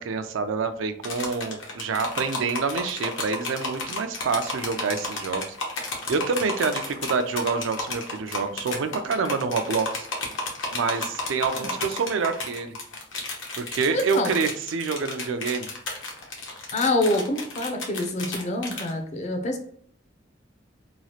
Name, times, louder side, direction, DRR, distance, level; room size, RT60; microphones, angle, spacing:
voice 1, 0.0-5.4 6.1-10.1 10.7-12.8 13.6-15.7, right 4 dB, 85° right, 8 dB, 0.4 m, -27 dB
sound 1, 1.0-18.9, left 2 dB, 75° left, 0.8 m, -32 dB
voice 2, 13.9-14.3 16.7-19.6, left 1 dB, 35° left, 5 dB, 0.5 m, -26 dB
3.0 x 2.3 x 2.8 m, 0.63 s
head